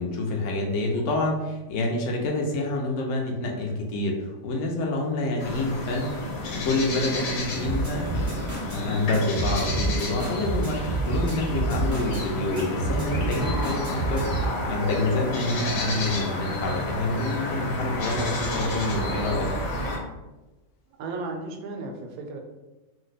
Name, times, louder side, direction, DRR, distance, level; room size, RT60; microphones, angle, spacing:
voice 1, 0.0-6.1 6.5-19.5, left 2 dB, 65° left, 0 dB, 0.9 m, -27 dB
sound 1, 5.4-20.0, left 1 dB, 80° left, 1.2 m, -31 dB
sound 2, 7.6-8.8 9.1-12.2 12.5-14.5, right 3 dB, 20° right, 0.6 m, -29 dB
voice 2, 20.9-22.4, right 3 dB, 90° right, 3 dB, 1.1 m, -35 dB
2.9 x 2.1 x 3.9 m, 1.1 s
omnidirectional pair, 1.5 m